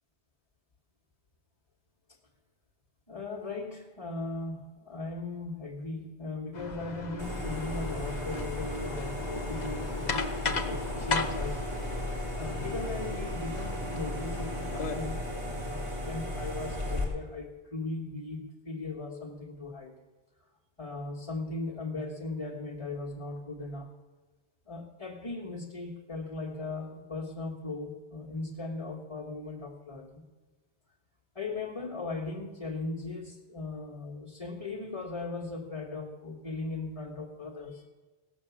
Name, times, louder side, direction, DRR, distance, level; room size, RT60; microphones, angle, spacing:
voice 1, 3.1-11.6 12.4-20.0 20.8-23.9 24.7-30.2 31.3-37.9, left 3 dB, 30° left, -6 dB, 1.5 m, -38 dB
sound 1, 6.5-15.0, left 4 dB, 45° left, 0.9 m, -37 dB
sound 2, 7.2-17.0, left 1 dB, 30° right, 3.2 m, -35 dB
17.0 x 6.8 x 7.1 m, 1.3 s
omnidirectional pair, 1.1 m